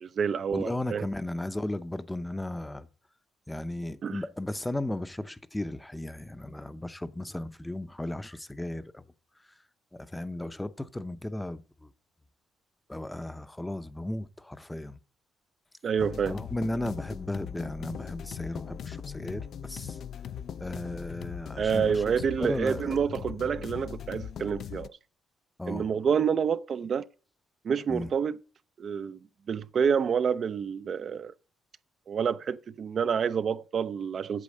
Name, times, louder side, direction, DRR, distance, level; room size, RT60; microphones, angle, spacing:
voice 1, 0.0-1.1 4.0-4.2 15.8-16.3 21.6-25.0 25.7-27.1 27.6-28.4 28.8-29.2 29.5-31.3 32.1-34.4, right 7 dB, 55° right, 0.4 m, -28 dB
voice 2, 0.5-2.9 3.5-9.0 9.4-9.5 9.9-11.9 12.9-15.0 16.3-20.0 20.6-22.0 22.4-23.0 25.6-25.9 27.9-28.1, left 1 dB, 10° left, 0.6 m, -35 dB
sound 1, 16.0-24.9, left 8 dB, 65° left, 0.4 m, -40 dB
8.5 x 7.2 x 6.4 m
cardioid pair, 90°, 0 cm